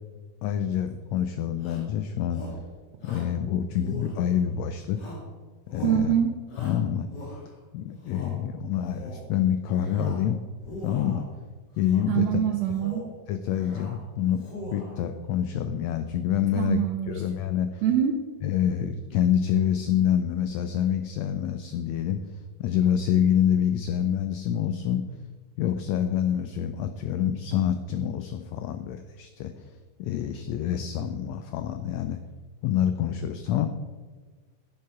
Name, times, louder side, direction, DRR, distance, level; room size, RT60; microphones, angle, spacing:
voice 1, 0.4-2.6 3.0-5.0 5.7-6.1 6.6-7.1 7.7-10.4 10.8-11.2 11.8-12.4 13.3-14.4 14.7-16.8 17.1-17.8 18.4-25.0 25.6-29.7 30.0-32.2 32.6-33.7, left 9 dB, 90° left, 9 dB, 1.5 m, -27 dB
Shout, 1.6-1.9 2.3-2.7 3.0-3.4 3.8-4.5 4.9-5.3 5.7-6.0 6.5-7.6 8.0-8.4 8.8-9.3 9.7-10.3 10.6-11.3 11.8-12.2 12.6-13.1 13.4-14.0 14.3-15.0, left 2 dB, 40° left, 2.1 m, -42 dB
voice 2, 5.8-6.3 12.1-13.1 16.5-17.2 17.8-18.2, right 9 dB, 80° right, 5 dB, 1.5 m, -24 dB
10.5 x 7.6 x 4.7 m, 1.4 s
omnidirectional pair, 3.6 m